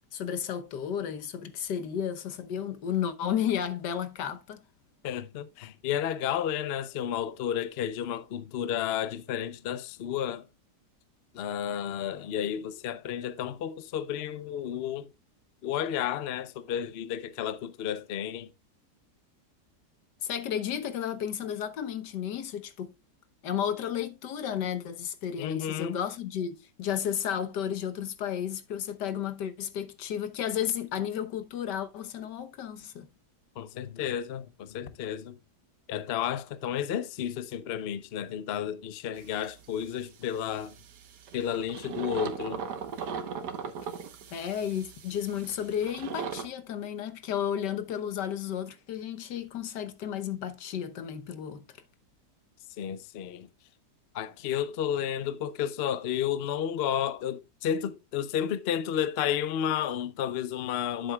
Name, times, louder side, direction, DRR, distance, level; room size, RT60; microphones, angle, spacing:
voice 1, 0.1-4.6 20.2-22.9 23.4-33.1 44.3-51.6, left 9 dB, 85° left, 1.6 m, -33 dB
voice 2, 5.0-10.4 11.3-15.1 15.6-18.5 25.4-26.0 33.6-35.4 35.9-40.7 41.3-42.6 52.8-53.5 54.1-61.1, left 9 dB, 55° left, 0.7 m, -32 dB
sound 1, 39.2-40.0 40.4-46.5, right 6 dB, 80° right, 1.7 m, -39 dB
10.0 x 8.0 x 2.3 m
omnidirectional pair, 1.8 m